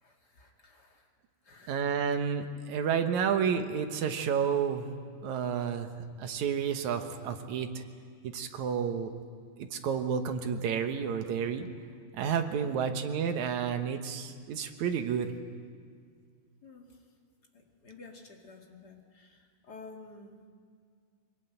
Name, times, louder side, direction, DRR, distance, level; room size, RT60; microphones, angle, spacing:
voice 1, 0.0-1.1 1.4-1.8 12.6-12.9 16.6-17.0 17.5-20.4, left 3 dB, 35° left, 1 dB, 1.9 m, -51 dB
voice 2, 1.7-4.9 5.2-5.9 6.2-7.8 8.2-9.1 9.6-11.7 12.2-15.3, right 7 dB, 65° right, 6 dB, 2.2 m, -30 dB
22.5 x 20.5 x 9.1 m, 2.1 s
omnidirectional pair, 4.3 m